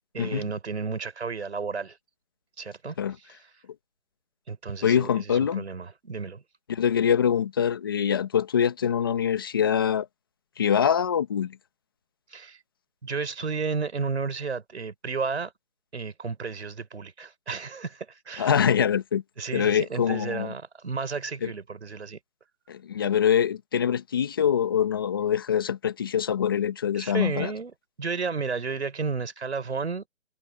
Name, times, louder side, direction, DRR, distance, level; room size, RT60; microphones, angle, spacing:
voice 1, 0.1-2.0 2.6-3.0 4.5-6.4 12.3-12.6 13.0-15.5 15.9-18.5 19.4-22.2 26.9-30.0, right 5 dB, 60° right, 4.9 m, -32 dB
voice 2, 4.8-5.6 6.7-10.1 10.6-11.6 18.4-19.2 19.5-20.5 21.4-21.5 22.7-27.5, left 8 dB, 20° left, 1.3 m, -24 dB
hypercardioid pair, 175°, 37 cm